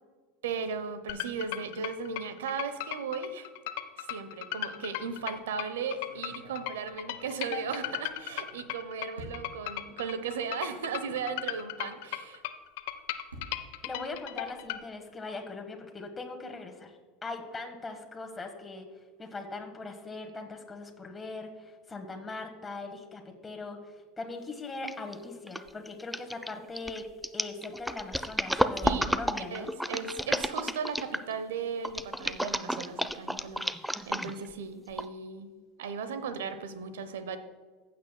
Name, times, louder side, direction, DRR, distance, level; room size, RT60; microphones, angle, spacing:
voice 1, 0.4-3.5 4.0-12.4 28.8-29.2 29.5-33.7 34.0-35.5 35.8-37.4, right 5 dB, 70° right, 11 dB, 0.8 m, -36 dB
sound 1, 1.1-14.8, left 14 dB, 65° left, 0.5 m, -37 dB
sound 2, 5.4-5.5 5.9-8.7 9.1-9.7 10.4-10.5 10.9-11.0 12.6-14.9, right 1 dB, 90° right, 2.0 m, -51 dB
voice 2, 13.8-27.1 27.3-29.7, left 3 dB, 15° left, 3 dB, 1.4 m, -40 dB
sound 3, 24.9-25.1 25.5-31.3 31.8-34.5 35.0-35.1, equal, ahead, 0.4 m, -31 dB
15.0 x 8.4 x 2.2 m, 1.5 s
figure-of-eight pair, 75°, 0 cm